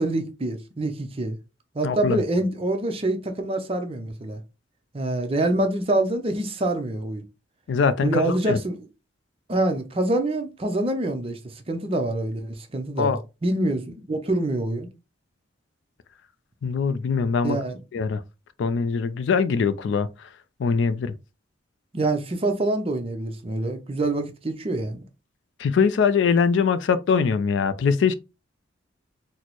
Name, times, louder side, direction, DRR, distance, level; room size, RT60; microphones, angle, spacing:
voice 1, 0.0-1.4 1.7-4.4 4.9-7.2 8.0-8.8 9.5-11.4 11.7-14.9 17.4-17.8 21.9-25.0, right 2 dB, 30° right, 0.5 m, -26 dB
voice 2, 1.8-2.2 7.7-8.6 13.0-13.2 16.6-17.6 17.9-18.2 18.6-20.1 20.6-21.1 25.6-28.1, left 5 dB, 60° left, 0.3 m, -22 dB
4.2 x 2.0 x 2.9 m
head